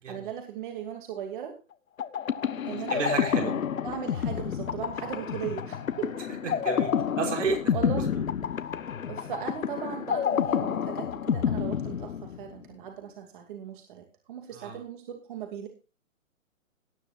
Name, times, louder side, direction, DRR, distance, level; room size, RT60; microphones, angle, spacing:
voice 1, 0.1-1.6 2.7-3.1 3.3-6.1 7.7-8.1 9.1-15.7, right 9 dB, 40° right, 4 dB, 2.5 m, -38 dB
sound 1, 2.0-12.7, left 8 dB, 80° left, 1.4 m, -29 dB
voice 2, 2.9-3.5 5.0-5.2 6.4-8.2 14.5-14.8, right 5 dB, 60° right, 2 dB, 5.7 m, -32 dB
19.0 x 10.0 x 2.5 m, 0.32 s
hypercardioid pair, 160°, 40 cm